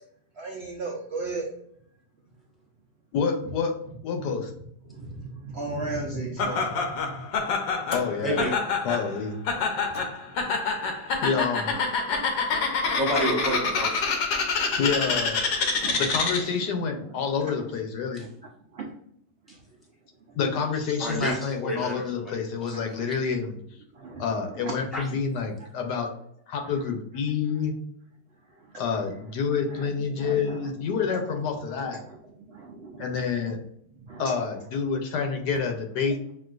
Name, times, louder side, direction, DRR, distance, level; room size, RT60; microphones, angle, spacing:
voice 1, 0.4-1.4 3.4-3.5 5.5-6.7 14.5-14.6 14.8-14.9 15.7-16.3 22.7-22.8 24.1-24.7 29.7-30.7 34.1-34.3, right 3 dB, 70° right, -1 dB, 0.6 m, -35 dB
voice 2, 3.1-3.7 4.0-4.5 7.9-8.4 8.8-9.4 11.2-11.8 14.8-15.4 16.0-18.2 20.4-23.5 24.2-26.1 26.5-27.8 28.8-32.0 33.0-33.6 34.2-36.2, left 5 dB, 75° left, 4 dB, 1.2 m, -28 dB
Laughter, 6.4-16.6, left 4 dB, 90° left, 1.5 m, -27 dB
sound 1, 7.8-8.2 9.5-10.2 10.5-10.6 11.7-12.2, left 1 dB, 45° left, 0.7 m, -46 dB
voice 3, 8.2-8.6 12.9-14.2 18.1-18.3 19.5-19.6 21.0-23.0 24.9-25.0, equal, ahead, -3 dB, 1.0 m, -30 dB
6.0 x 2.5 x 2.4 m, 0.69 s
omnidirectional pair, 1.9 m